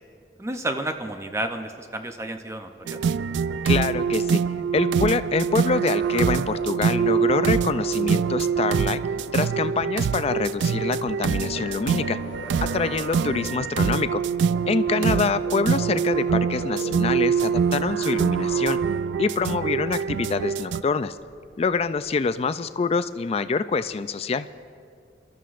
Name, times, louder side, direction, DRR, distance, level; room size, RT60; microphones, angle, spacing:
voice 1, 0.4-3.0 15.0-15.2, right 1 dB, 15° right, 5 dB, 0.7 m, -31 dB
sound 1, 2.9-20.8, right 6 dB, 80° right, 0.3 m, -24 dB
voice 2, 3.6-4.4 4.7-9.0 9.3-12.2 12.6-14.2 14.6-18.8 19.2-21.2 21.6-24.5, left 4 dB, 35° left, 13 dB, 0.3 m, -25 dB
sound 2, 6.0-22.3, left 2 dB, 75° left, 0.8 m, -42 dB
27.5 x 13.0 x 2.5 m, 2.4 s
head